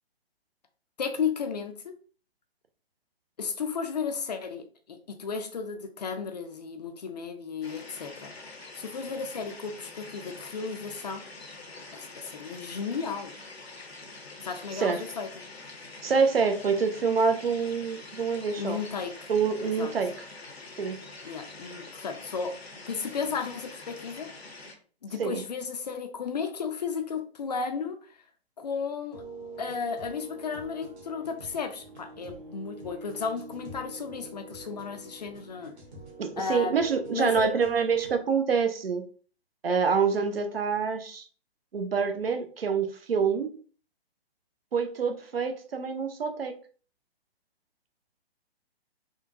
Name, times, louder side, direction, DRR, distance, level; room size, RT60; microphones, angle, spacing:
voice 1, 1.0-1.9 3.4-8.3 8.7-11.2 11.9-13.3 14.4-15.3 18.6-19.3 19.6-19.9 21.2-22.5 22.9-24.3 25.0-28.1 28.6-29.2 29.6-35.7 36.4-36.8 37.1-37.5, left 5 dB, 40° left, 6 dB, 0.4 m, -34 dB
sound 1, 7.6-24.7, left 3 dB, 75° left, 0.8 m, -45 dB
voice 2, 16.0-18.8 19.3-20.1 20.8-21.0 25.2-25.4 36.2-39.0 39.6-41.2 41.7-43.5 44.7-46.5, right 5 dB, 65° right, 7 dB, 0.6 m, -26 dB
sound 2, 29.1-38.2, right 3 dB, 45° right, 1.1 m, -44 dB
3.7 x 2.2 x 2.5 m, 0.40 s
figure-of-eight pair, 130°, 32 cm